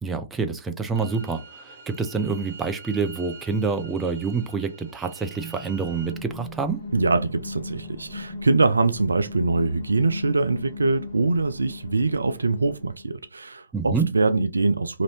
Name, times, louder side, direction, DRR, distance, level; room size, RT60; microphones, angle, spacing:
voice 1, 0.0-6.8 13.7-14.1, right 5 dB, 10° right, 0.5 m, -27 dB
sound 1, 1.0-6.1, right 4 dB, 60° right, 0.8 m, -45 dB
sound 2, 5.4-13.1, left 2 dB, 60° left, 1.1 m, -38 dB
voice 2, 6.9-15.0, right 3 dB, 75° right, 0.3 m, -23 dB
2.9 x 2.6 x 3.1 m
figure-of-eight pair, 120°, 0 cm